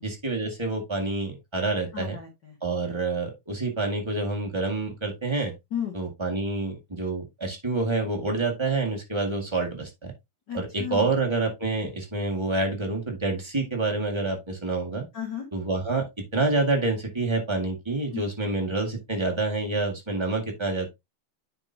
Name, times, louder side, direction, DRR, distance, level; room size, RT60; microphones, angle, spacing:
voice 1, 0.0-2.2 2.6-5.5 5.9-10.1 10.5-15.0 15.5-16.0 16.3-20.9, right 3 dB, 20° right, 0.7 m, -27 dB
voice 2, 1.9-2.6 5.7-5.9 10.5-11.1 15.1-15.4 18.1-18.3, left 9 dB, 40° left, 1.8 m, -33 dB
9.7 x 5.1 x 2.7 m
omnidirectional pair, 3.6 m